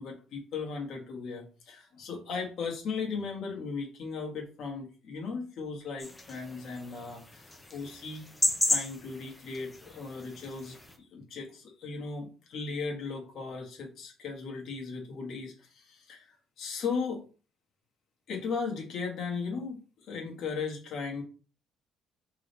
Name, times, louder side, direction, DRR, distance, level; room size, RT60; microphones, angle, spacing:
voice 1, 0.0-8.2 8.7-17.3 18.3-21.2, left 5 dB, 60° left, 0 dB, 1.6 m, -37 dB
sound 1, 6.0-11.0, left 1 dB, 10° left, 0.7 m, -34 dB
3.7 x 3.6 x 4.0 m, 0.37 s
cardioid pair, 130°, 0 cm